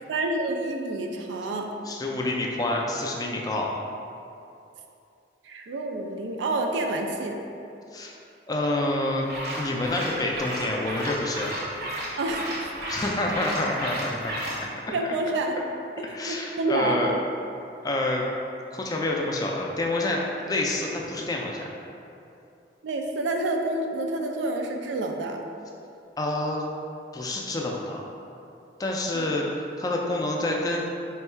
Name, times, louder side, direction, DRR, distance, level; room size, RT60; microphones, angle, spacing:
voice 1, 0.1-1.7 5.4-7.4 12.2-12.7 14.9-15.6 16.3-17.2 22.8-25.4 29.1-29.3, right 2 dB, 85° right, 3 dB, 0.4 m, -28 dB
voice 2, 1.8-3.7 7.9-8.1 8.5-9.3 9.6-11.5 12.9-14.4 14.9-15.0 16.0-17.1 17.8-18.3 18.7-21.7 26.2-26.6 27.1-28.0 28.8-30.8, left 2 dB, 20° left, -1 dB, 0.3 m, -28 dB
sound 1, 9.2-14.6, right 1 dB, 55° right, 0.7 m, -33 dB
3.5 x 2.3 x 4.3 m, 2.7 s
head